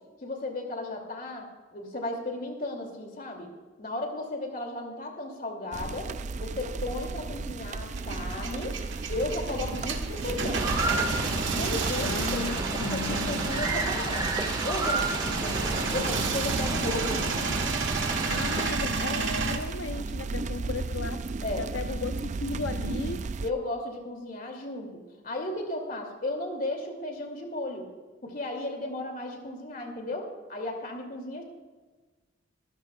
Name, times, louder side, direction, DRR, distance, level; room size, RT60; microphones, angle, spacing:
voice 1, 0.2-3.5 3.8-6.1 6.4-8.8 9.1-10.6 11.6-14.4 14.6-17.1 21.4-21.6 23.4-27.9 28.2-31.4, left 2 dB, 45° left, 2 dB, 2.6 m, -35 dB
sound 1, 5.7-23.5, right 3 dB, 40° right, 0.4 m, -35 dB
Male speech man speaking / Vehicle / Engine starting, 8.0-19.6, right 4 dB, 75° right, 1.6 m, -31 dB
sound 2, 10.5-18.7, right 2 dB, 20° right, 1.6 m, -32 dB
voice 2, 12.0-13.6 18.3-21.2 21.5-23.2, left 4 dB, 85° left, 6 dB, 0.6 m, -36 dB
24.0 x 14.0 x 2.3 m, 1.3 s
head